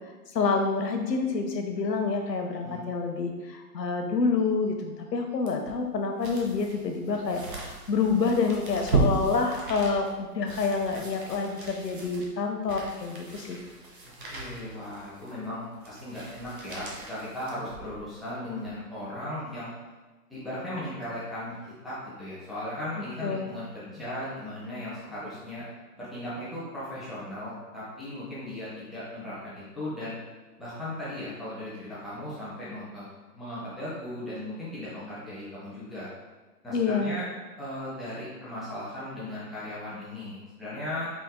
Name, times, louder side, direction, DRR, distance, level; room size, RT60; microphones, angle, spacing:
voice 1, 0.3-13.6 23.2-23.5 36.7-37.2, left 4 dB, 90° left, 4 dB, 1.0 m, -28 dB
sound 1, 5.5-18.1 18.6-18.7, right 3 dB, 35° right, 0.7 m, -35 dB
voice 2, 14.3-19.7 20.3-21.6 21.8-25.6 26.0-30.2 30.6-33.0 33.3-36.1 36.6-37.2 37.6-41.1, left 1 dB, ahead, -11 dB, 0.4 m, -37 dB
5.1 x 2.7 x 3.7 m, 1.3 s
hypercardioid pair, 160°, 48 cm